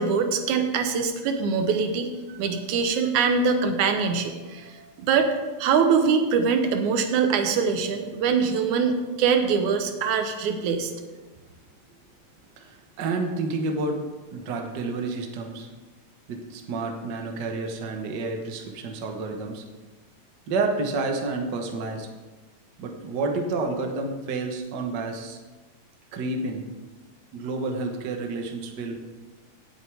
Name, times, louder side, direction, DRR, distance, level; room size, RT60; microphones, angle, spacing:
voice 1, 0.0-2.1 2.3-5.3 5.6-10.9, right 5 dB, 90° right, 6 dB, 2.4 m, -23 dB
voice 2, 12.6-14.0 14.3-15.7 16.3-19.6 20.5-22.1 22.8-25.4 26.1-26.6 27.3-29.0, right 3 dB, 50° right, 3 dB, 1.3 m, -29 dB
17.0 x 8.0 x 3.5 m, 1.3 s
omnidirectional pair, 3.3 m